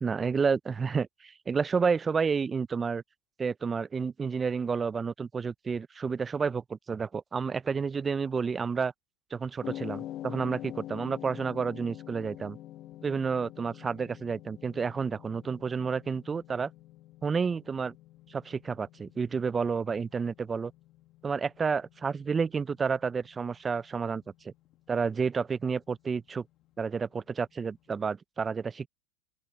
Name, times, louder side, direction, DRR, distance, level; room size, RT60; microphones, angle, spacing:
voice 1, 0.0-3.0 3.4-8.9 9.3-12.6 13.0-16.7 17.2-17.9 18.3-20.7 21.2-24.5 24.9-26.4 26.8-28.9, right 5 dB, 20° right, 0.3 m, -30 dB
sound 1, 9.6-27.9, left 13 dB, 45° left, 1.6 m, -47 dB
open air
supercardioid pair, 120°, 0 cm